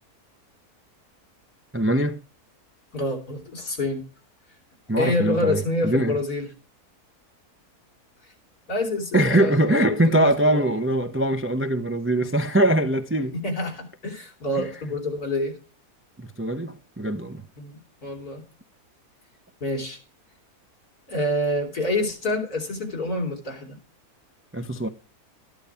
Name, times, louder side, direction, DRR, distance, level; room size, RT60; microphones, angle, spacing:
voice 1, 1.7-2.2 4.9-6.2 9.1-13.3 14.6-14.7 16.2-17.4 24.5-24.9, right 1 dB, 15° right, 0.4 m, -22 dB
voice 2, 2.9-4.0 5.0-6.5 8.7-10.7 13.3-15.6 17.6-18.4 19.6-20.0 21.1-23.8, left 1 dB, 75° left, 4.0 m, -27 dB
13.0 x 11.0 x 3.5 m
omnidirectional pair, 1.6 m